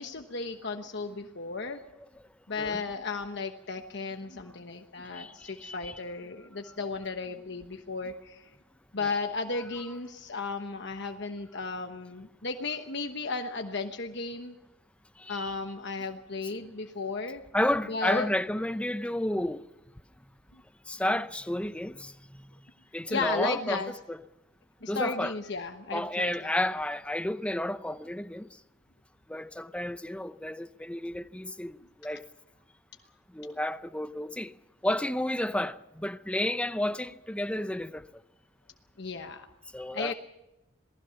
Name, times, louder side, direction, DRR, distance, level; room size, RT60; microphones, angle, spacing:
voice 1, 0.0-1.8 2.5-8.4 8.9-14.5 15.3-17.4 17.9-18.3 23.1-23.9 24.8-26.5 39.0-39.5 39.9-40.1, left 4 dB, 60° left, 1.2 m, -34 dB
voice 2, 5.1-6.0 9.0-9.1 15.2-15.5 16.5-16.6 17.5-19.6 20.9-22.5 22.9-23.8 24.1-24.2 24.9-25.3 25.9-28.5 29.3-32.2 33.3-34.5 34.8-38.0 39.7-40.1, left 1 dB, 5° left, 0.6 m, -31 dB
27.5 x 19.0 x 5.8 m
head